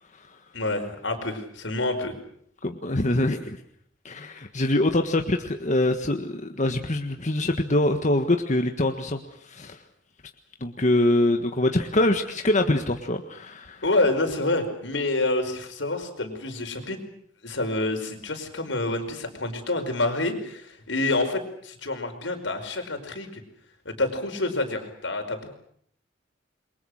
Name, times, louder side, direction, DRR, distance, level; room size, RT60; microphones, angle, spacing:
voice 1, 0.5-2.1 13.8-17.0 17.4-23.4 23.8-25.5, left 2 dB, 85° left, 5 dB, 5.2 m, -27 dB
voice 2, 2.6-3.6 4.0-9.8 10.6-13.8, left 1 dB, 40° left, 5 dB, 1.6 m, -24 dB
28.5 x 23.0 x 6.6 m, 0.65 s
head